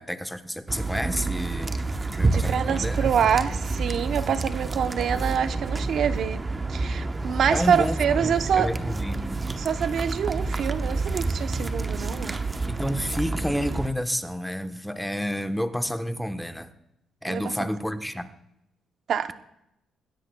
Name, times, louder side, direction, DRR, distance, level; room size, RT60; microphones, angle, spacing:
voice 1, 0.0-1.8 2.2-3.1 7.5-9.4 11.6-11.7 12.7-16.7 17.2-18.3, equal, ahead, 8 dB, 1.0 m, -30 dB
sound 1, 0.7-13.9, right 3 dB, 25° right, 0.9 m, -29 dB
voice 2, 2.3-6.4 6.7-8.7 9.6-12.4 17.3-17.4 19.1-19.3, right 8 dB, 65° right, 10 dB, 0.7 m, -26 dB
20.5 x 16.0 x 2.2 m, 0.84 s
cardioid pair, 90°, 0 cm